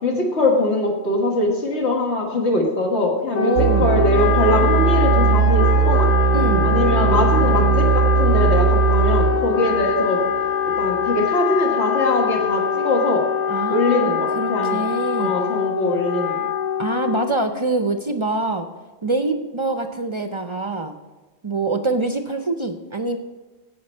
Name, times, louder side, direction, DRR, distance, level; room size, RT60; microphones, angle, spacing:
voice 1, 0.0-6.1 6.6-10.2 10.8-13.3 13.7-14.9 15.2-16.5, left 2 dB, 85° left, 0 dB, 1.9 m, -22 dB
Wind instrument woodwind instrument, 3.3-17.4, left 8 dB, 45° left, 0.6 m, -23 dB
voice 2, 3.4-3.9 6.3-6.7 13.5-15.3 16.8-18.7 19.0-20.9 21.4-23.2, right 2 dB, 40° right, 7 dB, 0.5 m, -24 dB
sound 1, 3.6-11.1, right 6 dB, 85° right, 0.9 m, -19 dB
15.5 x 5.9 x 4.3 m, 1.3 s
omnidirectional pair, 1.1 m